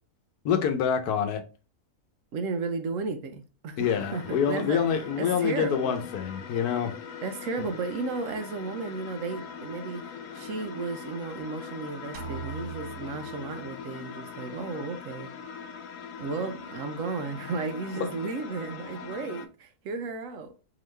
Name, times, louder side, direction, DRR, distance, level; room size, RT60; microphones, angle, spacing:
voice 1, 0.4-1.4 3.8-6.9 18.0-18.1, left 7 dB, 85° left, 1.3 m, -26 dB
voice 2, 2.3-4.8 5.2-6.0 7.2-15.3 16.2-20.5, right 4 dB, 65° right, 0.9 m, -34 dB
sound 1, 3.8-19.5, left 6 dB, 65° left, 0.9 m, -42 dB
sound 2, 12.1-14.0, right 6 dB, 90° right, 1.2 m, -41 dB
3.8 x 3.0 x 3.2 m
omnidirectional pair, 1.6 m